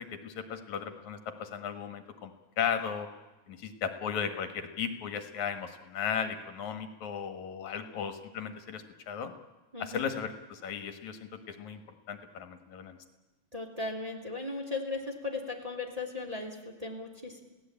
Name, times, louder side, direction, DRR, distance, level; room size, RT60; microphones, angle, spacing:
voice 1, 0.0-3.1 3.5-9.3 9.8-11.2 11.5-11.8 12.1-13.0, left 7 dB, 75° left, 8 dB, 2.9 m, -36 dB
voice 2, 9.7-10.1 13.5-17.4, left 3 dB, 15° right, 1 dB, 2.5 m, -37 dB
28.0 x 17.0 x 8.7 m, 1.1 s
omnidirectional pair, 3.4 m